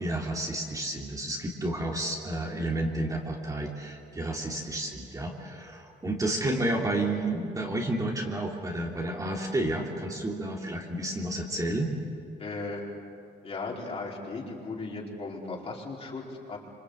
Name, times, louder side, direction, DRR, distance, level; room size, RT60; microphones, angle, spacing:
voice 1, 0.0-11.9, right 1 dB, 20° right, -1 dB, 3.2 m, -31 dB
voice 2, 12.4-13.0 13.4-16.6, left 3 dB, 35° left, -2 dB, 5.1 m, -36 dB
27.0 x 26.5 x 8.3 m, 2.4 s
cardioid pair, 145°, 17 cm